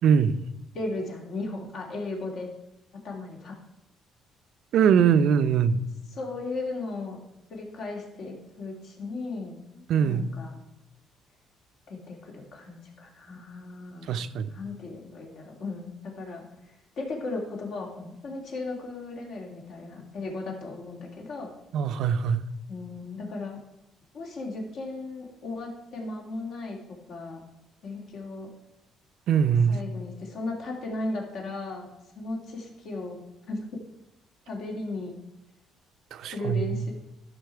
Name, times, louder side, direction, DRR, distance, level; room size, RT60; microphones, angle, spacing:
voice 1, 0.0-0.4 4.7-5.8 9.9-10.3 14.1-14.5 21.7-22.4 29.3-29.8 36.1-36.8, right 7 dB, 65° right, 11 dB, 0.6 m, -22 dB
voice 2, 0.7-2.5 2.9-3.6 6.1-7.2 7.5-10.6 11.9-14.2 14.5-21.5 22.7-23.6 24.1-27.4 27.8-28.5 29.7-31.9 32.1-33.2 33.5-33.8 34.5-35.2 36.2-36.9, left 2 dB, 65° left, 0 dB, 2.6 m, -36 dB
13.0 x 5.8 x 4.6 m, 0.93 s
cardioid pair, 120°, 0 cm